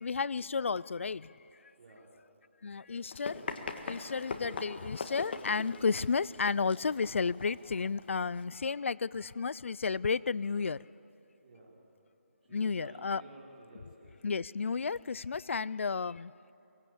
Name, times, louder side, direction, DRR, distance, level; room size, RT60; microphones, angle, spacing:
voice 1, 0.0-1.3 2.6-3.4 3.9-10.8 12.5-13.2 14.2-16.3, left 5 dB, 65° left, 22 dB, 0.4 m, -32 dB
voice 2, 1.7-2.1 4.5-4.6 11.4-11.7 12.4-14.1, right 2 dB, 40° right, -4 dB, 5.3 m, -53 dB
Run, 3.0-8.4, left 4 dB, 50° left, 1.8 m, -42 dB
23.5 x 19.0 x 8.5 m, 3.0 s
hypercardioid pair, 170°, 7 cm